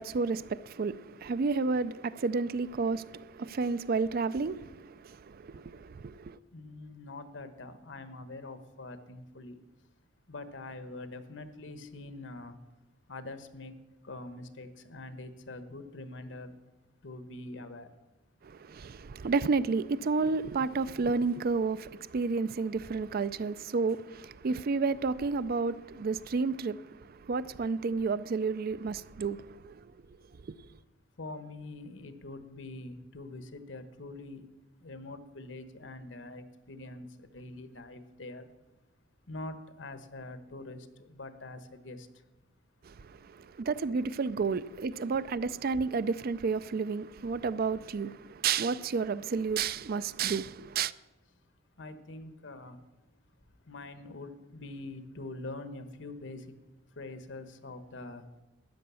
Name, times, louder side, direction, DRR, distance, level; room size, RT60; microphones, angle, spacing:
voice 1, 0.0-6.4 18.4-29.8 30.5-30.6 42.8-50.9, right 4 dB, 50° right, 0.4 m, -31 dB
voice 2, 6.5-9.6 10.3-12.5 13.1-13.7 14.0-16.5 17.0-17.9 31.2-34.5 34.8-37.1 37.3-38.5 39.3-42.0 51.8-52.8 53.7-56.4 57.0-58.2, left 2 dB, 70° left, 1.1 m, -44 dB
13.0 x 9.4 x 6.9 m
head